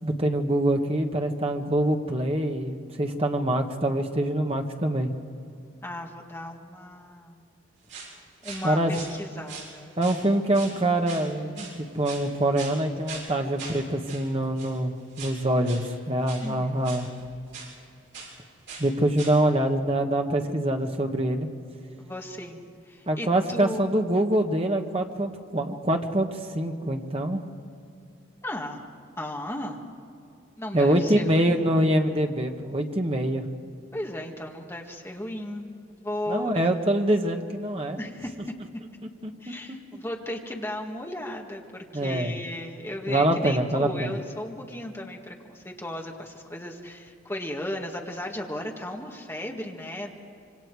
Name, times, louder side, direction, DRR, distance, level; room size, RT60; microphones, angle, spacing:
voice 1, 0.0-5.1 8.6-9.0 10.0-17.1 18.8-21.5 23.1-27.4 30.7-33.4 36.3-38.0 39.2-39.3 39.7-39.8 41.9-42.4 43.1-44.2, right 1 dB, 30° right, 4 dB, 1.4 m, -25 dB
voice 2, 5.8-7.4 8.4-9.9 16.4-16.7 22.0-23.8 28.4-28.8 29.2-29.8 30.6-31.7 33.9-35.6 35.9-36.6 38.0-38.3 39.4-50.1, left 1 dB, 10° left, 0 dB, 1.8 m, -35 dB
sound 1, 7.9-8.1 8.4-9.1 9.5-10.2 10.5-10.8 11.1-11.3 11.6-12.3 12.6-12.8 13.1-13.3 13.6-13.8 14.1-14.3 14.6-14.7 15.1-15.4 15.6-15.9 16.3-16.5 16.8-17.7 18.1-18.3 18.7-18.9 19.1-19.4, right 4 dB, 65° right, 7.2 m, -41 dB
26.0 x 25.0 x 4.8 m, 2.5 s
head